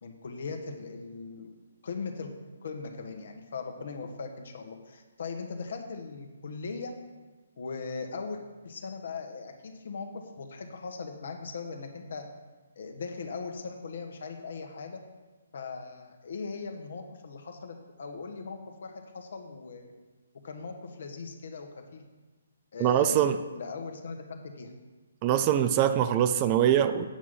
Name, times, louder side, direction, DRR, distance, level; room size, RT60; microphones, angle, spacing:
voice 1, 0.0-1.5 1.8-2.3 2.6-6.9 7.6-12.3 12.7-15.0 15.5-19.9 20.4-22.0 22.7-24.7, left 4 dB, 55° left, 4 dB, 1.4 m, -39 dB
voice 2, 22.8-23.4 25.2-27.1, right 10 dB, 25° right, 9 dB, 0.5 m, -23 dB
8.8 x 6.2 x 7.5 m, 1.3 s
figure-of-eight pair, 135°, 0 cm